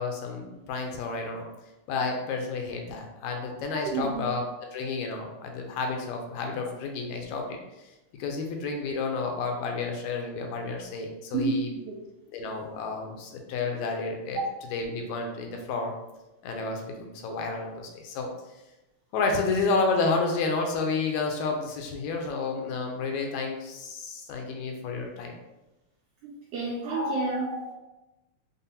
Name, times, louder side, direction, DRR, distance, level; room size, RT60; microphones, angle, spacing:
voice 1, 0.0-1.5 1.9-4.4 4.7-7.5 8.2-11.7 12.3-14.4 14.7-15.9 16.4-18.3 19.1-25.4, left 4 dB, 80° left, 2 dB, 1.8 m, -30 dB
voice 2, 3.7-4.2 11.3-12.0 12.5-12.6 14.3-14.4 24.5-24.8 26.2-27.7, right 3 dB, 85° right, -4 dB, 1.4 m, -30 dB
5.2 x 2.1 x 2.7 m, 0.99 s
omnidirectional pair, 3.4 m